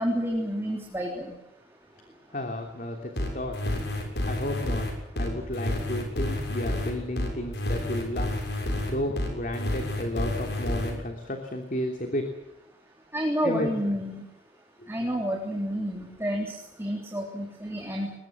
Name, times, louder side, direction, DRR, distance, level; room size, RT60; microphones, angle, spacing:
voice 1, 0.0-1.3 13.1-14.2 14.9-18.1, equal, 15° right, 0 dB, 3.5 m, -29 dB
voice 2, 2.3-3.6 3.9-4.9 5.2-8.5 8.9-12.3 13.4-13.9 14.8-15.2, left 1 dB, 50° left, 4 dB, 3.1 m, -33 dB
sound 1, 3.2-10.9, left 1 dB, 75° left, 6.8 m, -29 dB
22.5 x 21.0 x 7.5 m, 0.90 s
head